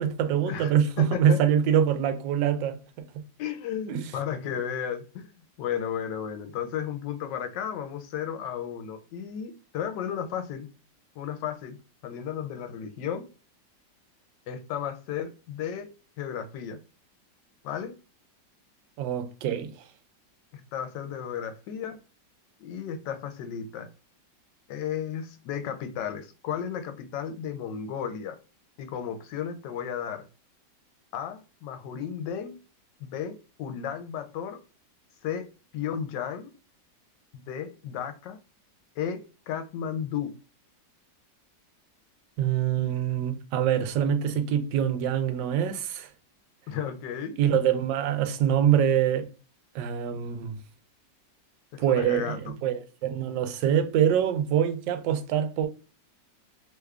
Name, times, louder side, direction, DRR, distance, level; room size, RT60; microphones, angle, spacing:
voice 1, 0.0-2.8 3.9-4.1 19.0-19.7 42.4-46.1 47.4-49.3 49.7-50.6 51.8-55.7, right 9 dB, 90° right, 1.2 m, -25 dB
voice 2, 1.0-1.4 3.4-5.3 5.6-10.7 11.2-11.8 12.0-13.3 14.5-15.9 16.2-16.8 17.6-18.0 20.5-22.0 22.6-23.9 24.7-28.4 28.8-30.2 31.1-32.6 33.0-34.6 35.2-35.5 35.7-36.5 37.3-38.4 39.0-40.3 46.7-47.4 51.7-52.4, left 8 dB, 90° left, 1.3 m, -34 dB
3.2 x 2.4 x 3.2 m
omnidirectional pair, 1.9 m